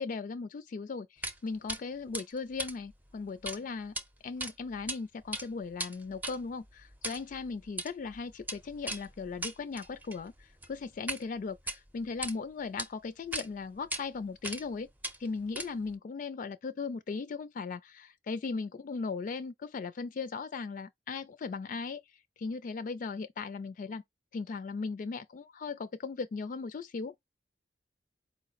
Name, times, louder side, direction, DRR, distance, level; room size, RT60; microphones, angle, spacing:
voice 1, 0.0-3.9 4.2-14.9 15.2-22.0 22.4-24.0 24.3-27.2, left 4 dB, 50° left, 0.3 m, -38 dB
sound 1, 1.2-1.4 1.7-1.8 2.1-3.6 3.8-4.0 4.4-5.0 5.2-11.2 11.6-12.3 12.8-12.9 13.3-13.5 13.9-14.0 14.4-14.7 15.0-15.9, right 1 dB, 10° right, 0.5 m, -39 dB
4.4 x 2.0 x 3.9 m
head